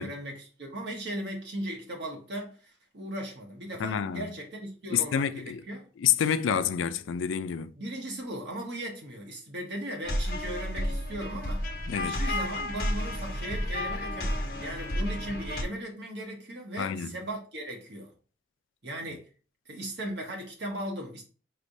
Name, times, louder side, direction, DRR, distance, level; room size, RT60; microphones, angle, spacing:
voice 1, 0.0-5.9 7.8-11.6 12.0-18.1 18.8-19.3 19.6-21.2, right 1 dB, 60° right, 1.2 m, -37 dB
voice 2, 3.8-4.3 4.9-5.6 6.0-7.7 11.9-12.3 16.8-17.2, left 8 dB, 90° left, 0.4 m, -28 dB
sound 1, 10.0-15.6, left 1 dB, 50° left, 1.0 m, -31 dB
5.2 x 3.2 x 2.6 m
head